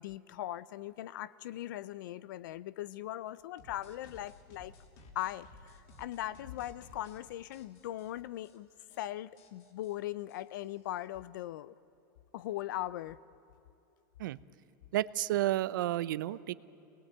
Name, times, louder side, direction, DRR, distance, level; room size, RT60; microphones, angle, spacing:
voice 1, 0.0-4.7 5.1-8.7 9.0-11.7 12.3-13.2, left 14 dB, 75° left, 17 dB, 0.6 m, -40 dB
sound 1, 3.6-7.2 7.5-8.1 8.4-8.6 8.8-9.0 9.4-11.1, left 3 dB, 50° left, 3.0 m, -56 dB
voice 2, 14.9-16.5, right 14 dB, 80° right, 17 dB, 0.7 m, -31 dB
25.5 x 20.0 x 9.0 m, 2.7 s
supercardioid pair, 150°, 10 cm